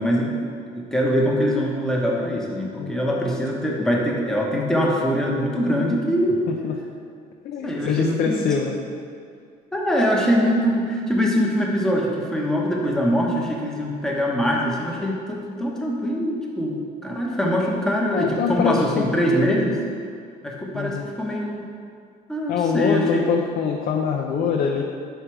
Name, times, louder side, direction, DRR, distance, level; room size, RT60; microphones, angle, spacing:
voice 1, 0.0-6.4 7.6-8.5 9.7-19.8 20.4-21.6 22.3-23.2, equal, 5° left, -3 dB, 1.0 m, -23 dB
voice 2, 6.5-6.8 7.4-8.8 18.1-19.0 20.7-21.1 22.5-24.8, left 6 dB, 60° left, 0 dB, 0.5 m, -24 dB
4.9 x 4.5 x 4.8 m, 2.3 s
cardioid pair, 110°, 17 cm